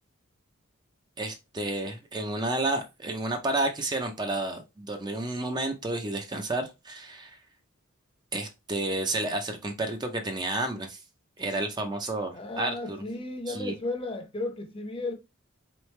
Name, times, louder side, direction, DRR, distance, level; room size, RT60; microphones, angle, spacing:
voice 1, 1.2-7.4 8.3-11.0 11.4-13.0 13.5-13.7, right 2 dB, 20° right, 0.5 m, -31 dB
voice 2, 12.3-15.1, left 2 dB, 25° left, 0.7 m, -34 dB
4.0 x 3.1 x 3.1 m
head